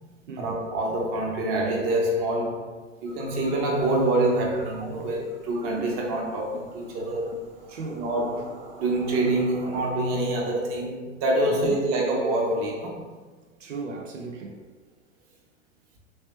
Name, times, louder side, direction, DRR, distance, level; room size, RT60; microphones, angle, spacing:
voice 1, 0.4-7.3 7.9-13.0, right 1 dB, 40° right, 0.9 m, -26 dB
sound 1, 3.1-9.9, right 2 dB, 20° right, 0.4 m, -44 dB
voice 2, 7.7-8.1 11.4-11.8 13.6-14.6, right 4 dB, 90° right, 0.5 m, -36 dB
3.2 x 2.8 x 3.2 m
hypercardioid pair, 105°, 36 cm